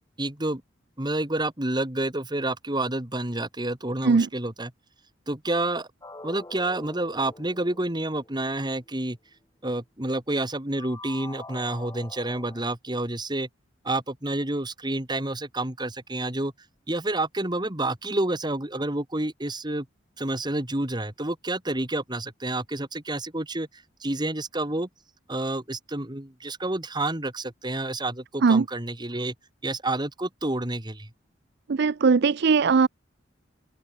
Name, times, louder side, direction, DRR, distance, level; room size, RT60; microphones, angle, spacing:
voice 1, 0.2-0.6 1.0-4.7 5.3-5.9 6.2-9.2 9.6-13.5 13.8-16.5 16.9-19.9 20.2-23.7 24.0-24.9 25.3-29.3 29.6-31.1, right 2 dB, 20° right, 2.2 m, -29 dB
sound 1, 6.0-9.0 10.8-12.6, left 2 dB, 20° left, 3.2 m, -45 dB
voice 2, 31.7-32.9, right 5 dB, 60° right, 0.5 m, -19 dB
open air
head